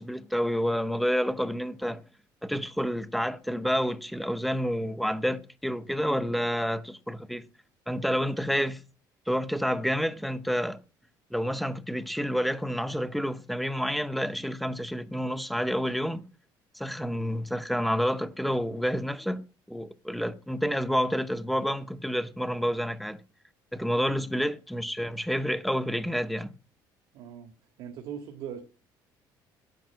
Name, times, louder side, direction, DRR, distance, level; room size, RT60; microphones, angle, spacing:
voice 1, 0.0-2.0 2.4-7.4 7.9-8.8 9.3-10.8 11.3-16.2 16.8-23.2 23.7-26.5, equal, ahead, 0.7 m, -29 dB
voice 2, 27.1-27.5 27.8-28.6, right 8 dB, 70° right, 1.7 m, -40 dB
10.5 x 7.0 x 9.4 m
cardioid pair, 145°, 8 cm